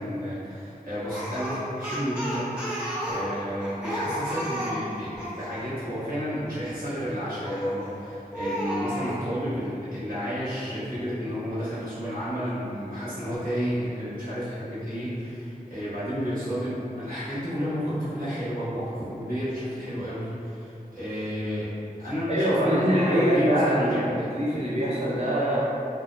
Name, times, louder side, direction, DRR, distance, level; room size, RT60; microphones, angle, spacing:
voice 1, 0.0-21.7 22.0-24.3, equal, 70° right, -12 dB, 1.1 m, -31 dB
Speech, 1.1-5.4 7.4-7.9 8.3-9.2, equal, 5° right, 0.6 m, -32 dB
voice 2, 22.3-25.6, equal, 45° right, -9 dB, 0.7 m, -24 dB
2.6 x 2.2 x 2.6 m, 2.6 s
wide cardioid pair, 45°, 15 cm